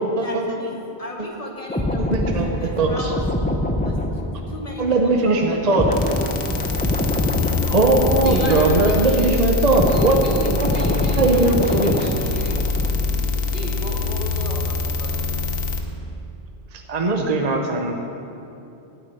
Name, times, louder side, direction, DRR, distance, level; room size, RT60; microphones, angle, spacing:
voice 1, 0.2-3.2 3.8-4.0 4.5-6.1 8.4-8.7, left 1 dB, 35° left, 0 dB, 1.3 m, -35 dB
sound 1, 1.7-9.2 9.5-13.2 13.5-13.7, left 1 dB, 10° left, 0.5 m, -25 dB
voice 2, 2.0-3.1 4.8-5.9 7.7-10.2 11.2-12.0 16.7-17.9, right 2 dB, 40° right, 2 dB, 0.9 m, -19 dB
sound 2, 5.9-15.8, left 4 dB, 55° left, 1.2 m, -25 dB
voice 3, 8.1-9.3 9.8-12.8 13.5-15.5, right 1 dB, 80° right, -3 dB, 2.5 m, -32 dB
9.8 x 8.1 x 9.2 m, 2.8 s
omnidirectional pair, 1.2 m